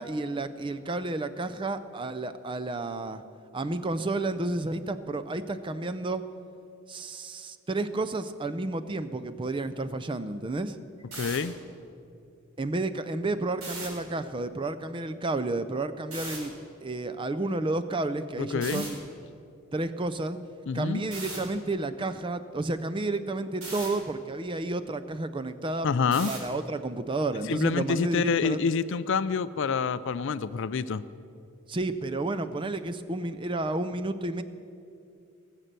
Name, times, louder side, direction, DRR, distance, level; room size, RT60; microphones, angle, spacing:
voice 1, 0.0-3.2 3.5-6.2 6.9-10.8 12.6-16.5 16.8-19.0 19.7-20.4 20.7-25.9 26.3-28.6 31.7-34.4, right 2 dB, 20° right, 12 dB, 0.4 m, -31 dB
sound 1, 11.0-11.4 13.5-13.9 16.1-16.4 18.6-18.9 21.1-21.4 23.6-23.9 26.1-26.5, right 2 dB, 80° right, 4.2 m, -37 dB
voice 2, 11.2-11.5 18.4-18.8 20.7-21.0 25.8-26.3 27.5-31.0, left 5 dB, 55° left, 15 dB, 0.4 m, -27 dB
19.5 x 7.5 x 6.7 m, 2.5 s
head